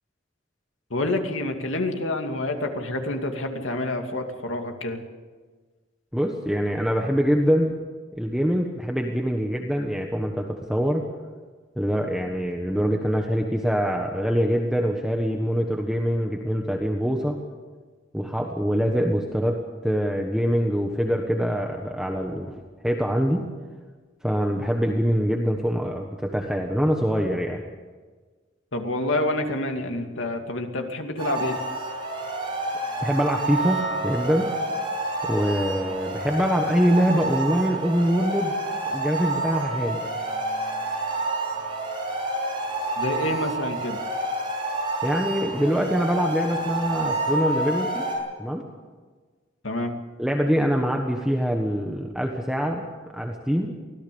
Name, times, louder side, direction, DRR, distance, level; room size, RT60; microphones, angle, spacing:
voice 1, 0.9-5.0 28.7-31.6 43.0-44.0 49.6-49.9, left 1 dB, 85° left, 4 dB, 2.6 m, -28 dB
voice 2, 6.1-7.7 8.2-11.0 11.8-17.4 18.1-22.5 22.8-23.5 24.2-27.6 33.0-34.5 35.2-38.5 38.9-40.0 45.0-48.0 48.4-48.6 50.2-52.9 53.1-53.7, equal, 5° right, 2 dB, 1.4 m, -24 dB
sound 1, 31.2-48.2, right 2 dB, 25° right, 7.8 m, -29 dB
24.0 x 17.5 x 7.1 m, 1.4 s
head